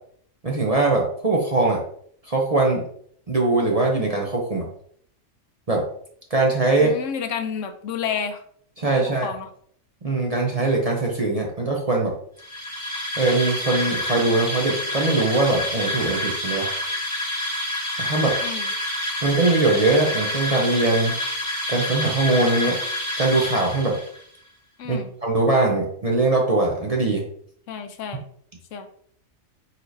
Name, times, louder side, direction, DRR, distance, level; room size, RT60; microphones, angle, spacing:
voice 1, 0.4-1.8 2.3-2.8 3.3-4.7 5.7-5.8 6.3-6.9 8.8-9.3 10.0-12.1 13.2-16.7 18.0-18.4 19.2-21.1 21.7-22.8 23.2-24.0 24.9-27.2, right 2 dB, 40° right, -1 dB, 0.6 m, -21 dB
voice 2, 6.8-8.4 8.8-9.5 18.4-18.7 24.8-25.1 27.7-28.2 28.7-28.9, left 7 dB, 75° left, 8 dB, 0.9 m, -30 dB
sound 1, 12.4-24.2, left 1 dB, 35° left, 1.2 m, -28 dB
4.6 x 4.1 x 2.6 m, 0.62 s
omnidirectional pair, 1.4 m